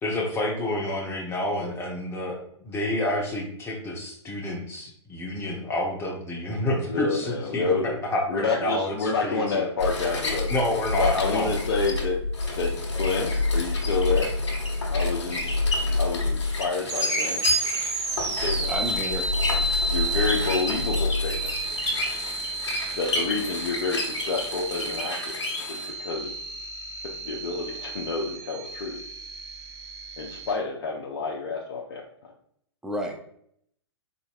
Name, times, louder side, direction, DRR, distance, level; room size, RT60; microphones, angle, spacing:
voice 1, 0.0-2.4 2.6-9.6 10.5-11.5, left 1 dB, 15° left, 0 dB, 0.9 m, -29 dB
voice 2, 6.9-7.9 8.3-10.5 11.0-12.2 12.6-14.3 14.9-15.6 16.0-17.7 18.2-18.7 19.9-21.5 23.0-25.4 25.7-26.3 27.0-29.0 30.2-32.3, left 4 dB, 60° left, -1 dB, 0.6 m, -29 dB
sound 1, 9.8-25.9, left 2 dB, 75° left, 1.5 m, -28 dB
sound 2, 16.8-30.5, right 2 dB, 70° right, 0.9 m, -32 dB
voice 3, 18.7-19.3 32.8-33.2, equal, 5° right, 0 dB, 0.6 m, -30 dB
4.1 x 3.9 x 2.3 m, 0.68 s
figure-of-eight pair, 115°, 15 cm